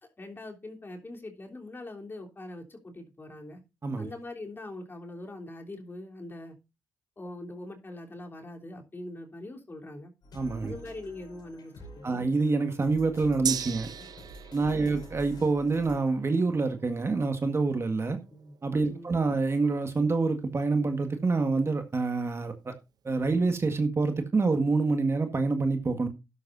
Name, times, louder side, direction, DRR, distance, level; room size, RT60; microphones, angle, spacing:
voice 1, 0.0-3.6 4.0-6.5 7.2-10.1 10.6-12.2 14.6-14.9 18.3-18.5 18.8-19.1, left 2 dB, 30° left, 3.4 m, -42 dB
sound 1, 10.2-16.0, equal, 70° left, 5.4 m, -48 dB
voice 2, 10.3-10.7 12.0-13.9 14.5-18.2 18.6-22.7 23.0-26.1, right 3 dB, 35° right, 1.7 m, -27 dB
Gong, 13.4-21.2 21.5-21.6, right 8 dB, 60° right, 0.6 m, -41 dB
12.5 x 11.0 x 2.7 m
cardioid pair, 75°, 7 cm